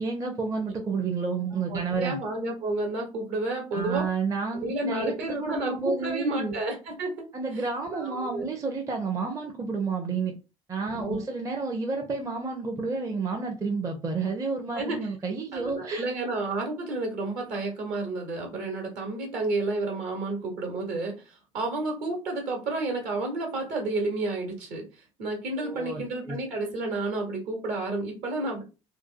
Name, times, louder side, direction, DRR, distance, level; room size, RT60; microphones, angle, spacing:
voice 1, 0.0-2.2 3.7-6.5 7.3-10.4 10.7-16.1 25.6-26.4, right 4 dB, 20° right, 0.5 m, -30 dB
voice 2, 1.7-4.1 4.6-7.1 7.5-7.6 7.9-8.5 10.9-11.2 14.7-15.0 15.5-24.8 25.2-28.6, right 2 dB, 55° right, 1.1 m, -31 dB
2.7 x 2.1 x 2.5 m
figure-of-eight pair, 60°, 18 cm